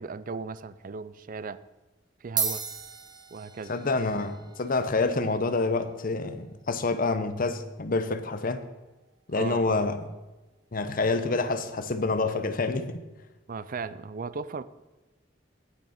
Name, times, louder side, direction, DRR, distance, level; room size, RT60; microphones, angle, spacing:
voice 1, 0.0-1.6 2.2-2.6 3.3-3.7 9.3-9.8 13.5-14.6, right 4 dB, 45° right, 16 dB, 0.4 m, -36 dB
sound 1, 0.7-1.0 1.9-2.0 2.2-10.9, right 5 dB, 20° right, 1.4 m, -39 dB
voice 2, 3.7-8.7 9.3-10.1 10.7-13.0, left 3 dB, 50° left, 10 dB, 0.8 m, -27 dB
17.0 x 6.5 x 4.3 m, 1.1 s
head